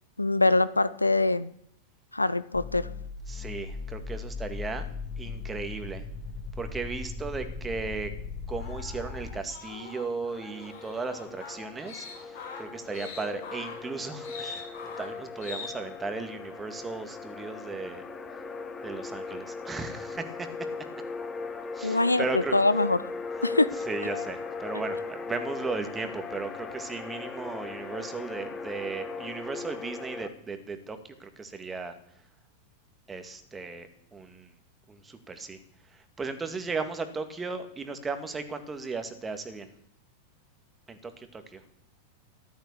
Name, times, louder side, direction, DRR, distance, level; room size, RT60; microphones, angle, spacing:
voice 1, 0.2-1.5 2.1-2.9 21.8-23.0 23.4-23.7, left 2 dB, 85° left, 17 dB, 0.5 m, -23 dB
sound 1, 2.5-9.4, left 4 dB, 40° left, 3.9 m, -38 dB
voice 2, 3.3-4.9 5.2-6.0 6.6-8.1 8.5-18.0 18.8-20.5 21.7-22.5 23.4-23.5 23.9-31.9 33.1-34.5 34.9-35.6 36.2-39.7 40.9-41.6, right 4 dB, 15° right, 8 dB, 2.0 m, -36 dB
sound 2, 8.6-15.7, left 5 dB, 60° left, 6.5 m, -43 dB
sound 3, 10.3-30.3, left 4 dB, 20° left, 1.5 m, -39 dB
14.0 x 12.0 x 7.0 m, 0.70 s
figure-of-eight pair, 90°, 0 cm